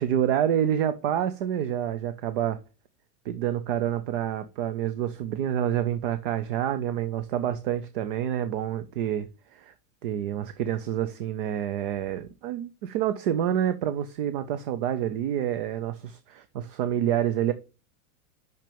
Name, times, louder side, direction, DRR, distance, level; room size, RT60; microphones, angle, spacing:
voice 1, 0.0-2.6 3.3-9.7 10.0-17.5, right 10 dB, 40° right, 0.4 m, -28 dB
6.0 x 5.9 x 6.8 m
supercardioid pair, 165°, 45 cm